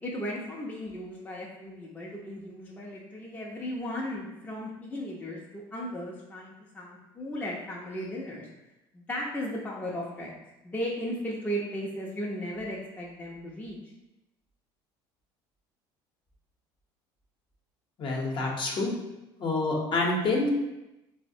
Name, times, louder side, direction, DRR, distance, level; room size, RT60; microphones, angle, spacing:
voice 1, 0.0-8.5 8.9-10.3 10.6-13.8, equal, 15° left, -4 dB, 0.6 m, -36 dB
voice 2, 18.0-18.9 19.4-20.5, left 2 dB, 45° left, -1 dB, 0.8 m, -27 dB
3.9 x 2.0 x 2.6 m, 0.96 s
supercardioid pair, 90°, 11 cm